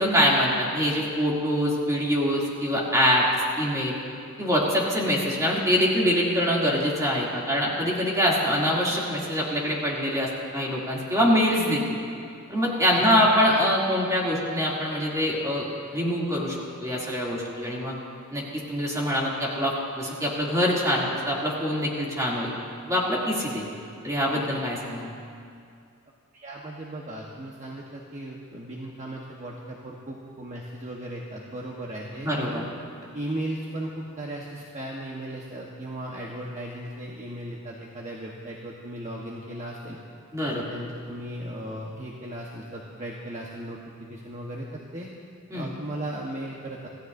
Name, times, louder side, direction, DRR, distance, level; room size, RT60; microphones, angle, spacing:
voice 1, 0.0-3.3 3.6-4.0 4.4-12.0 12.5-15.7 15.9-17.9 18.3-22.5 22.9-23.6 24.0-25.1 32.2-32.7 40.3-40.6 45.5-45.7, equal, 15° right, -5 dB, 2.8 m, -24 dB
voice 2, 12.9-13.3 26.3-32.6 33.1-40.0 40.5-43.8 44.1-45.1 45.5-46.9, right 1 dB, 35° right, -3 dB, 1.3 m, -36 dB
26.5 x 16.0 x 2.7 m, 2.4 s
head